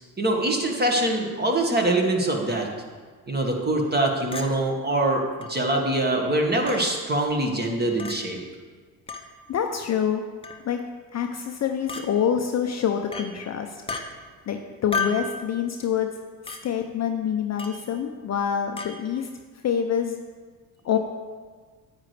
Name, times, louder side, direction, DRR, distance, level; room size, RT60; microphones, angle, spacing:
voice 1, 0.2-2.7 3.3-5.2 5.5-8.4, right 1 dB, 20° right, 2 dB, 1.7 m, -24 dB
Chink clink, 4.3-4.5 5.4-5.5 6.7-6.8 8.0-8.2 9.1-9.3 10.4-10.7 11.9-12.1 13.1-13.3 13.9-14.0 14.9-15.3 16.5-16.6 17.6-17.8 18.8-18.9, left 4 dB, 10° left, 0.9 m, -31 dB
voice 2, 9.5-10.2 10.6-10.8 11.1-13.8 14.5-16.1 16.4-19.3 19.6-20.2 20.8-21.0, left 8 dB, 35° left, 4 dB, 0.7 m, -26 dB
9.6 x 8.4 x 3.3 m, 1.5 s
hypercardioid pair, 70°, 48 cm